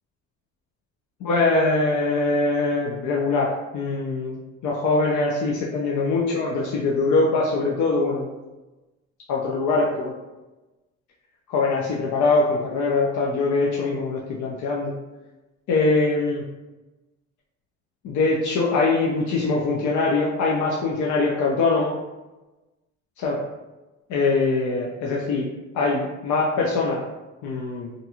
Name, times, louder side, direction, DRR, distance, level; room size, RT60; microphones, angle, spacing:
voice 1, 1.2-8.4 9.3-10.1 11.5-14.9 15.7-16.4 18.0-21.9 23.2-23.4 24.1-25.5 25.7-27.1 27.4-27.9, left 3 dB, 75° left, -3 dB, 0.5 m, -23 dB
2.6 x 2.3 x 2.8 m, 1.1 s
cardioid pair, 90°, 30 cm